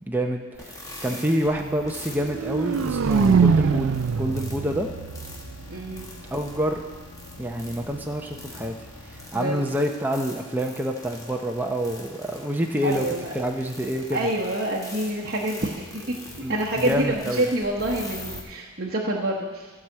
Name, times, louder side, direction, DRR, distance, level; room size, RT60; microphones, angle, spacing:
voice 1, 0.1-4.9 6.3-6.8 7.4-8.7 9.1-13.1 13.3-14.2 16.4-17.5, equal, 10° right, 1 dB, 0.6 m, -27 dB
sound 1, 0.5-18.4, left 1 dB, 15° left, 1.3 m, -43 dB
sound 2, 1.5-9.3, left 2 dB, 90° left, 1.5 m, -45 dB
space race car pit stop, 2.2-6.2, right 5 dB, 70° right, 0.4 m, -23 dB
voice 2, 5.7-6.1 9.3-9.6 12.8-13.3 14.1-16.1 16.5-19.7, right 1 dB, 50° right, -4 dB, 1.0 m, -27 dB
14.0 x 4.9 x 7.5 m, 1.4 s
head